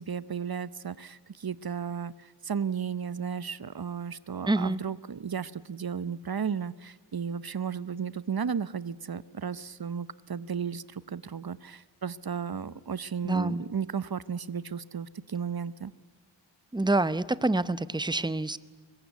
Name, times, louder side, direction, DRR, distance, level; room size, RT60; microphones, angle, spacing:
voice 1, 0.0-15.9, right 7 dB, 50° right, 19 dB, 0.8 m, -34 dB
voice 2, 4.5-4.8 13.2-13.6 16.7-18.6, right 2 dB, 10° right, 17 dB, 0.8 m, -27 dB
25.0 x 21.5 x 8.3 m, 1.3 s
wide cardioid pair, 55°, 47 cm